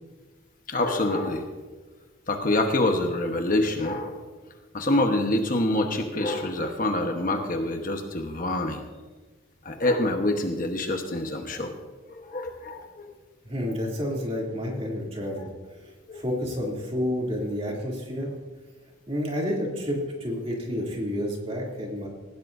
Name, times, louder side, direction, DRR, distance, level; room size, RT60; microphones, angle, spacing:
voice 1, 0.7-1.5 2.3-4.2 4.7-8.8 9.6-11.7 12.1-13.0 15.4-15.5 16.1-16.2, left 1 dB, 40° left, 4 dB, 1.2 m, -26 dB
voice 2, 13.4-15.5 16.1-18.3 19.1-22.1, equal, 30° right, -2 dB, 2.9 m, -30 dB
19.5 x 16.0 x 2.7 m, 1.3 s
head